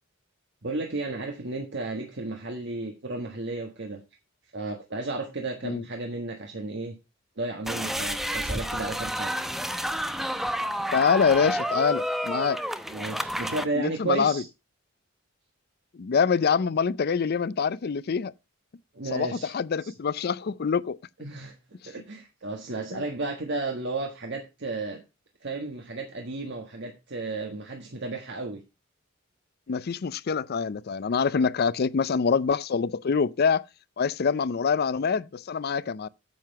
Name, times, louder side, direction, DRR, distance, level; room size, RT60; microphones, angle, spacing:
voice 1, 0.6-4.0 4.5-7.0 7.4-9.3 12.9-14.5 18.9-19.5 19.8-19.9 21.2-21.6 21.8-25.0 25.4-28.6, right 3 dB, 60° right, 1.5 m, -33 dB
sound 1, 7.7-13.6, equal, ahead, 0.7 m, -30 dB
voice 2, 10.9-12.6 13.7-14.4 15.9-18.3 19.1-21.0 22.9-23.0 29.7-33.6 34.0-36.1, left 6 dB, 50° left, 0.4 m, -25 dB
9.4 x 7.7 x 4.6 m
head